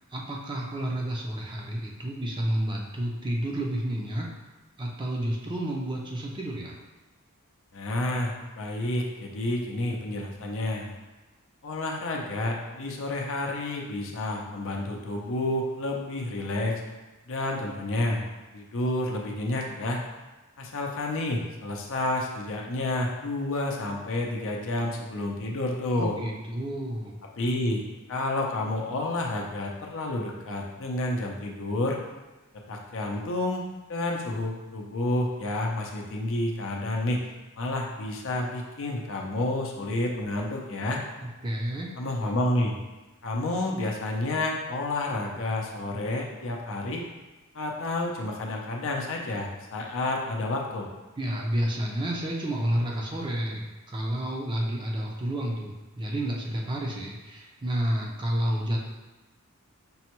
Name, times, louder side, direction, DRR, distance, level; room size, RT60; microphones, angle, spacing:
voice 1, 0.1-4.3 4.8-6.8 26.0-27.2 41.2-41.9 51.2-58.8, right 1 dB, 20° right, -1 dB, 0.5 m, -30 dB
voice 2, 7.7-10.9 11.6-16.8 17.3-18.2 18.5-20.0 20.6-26.1 27.4-27.8 28.1-32.0 32.7-37.2 37.6-41.0 42.0-42.7 43.2-47.0 47.5-50.9, left 2 dB, 65° left, 0 dB, 0.5 m, -30 dB
5.3 x 2.2 x 2.9 m, 1.1 s
head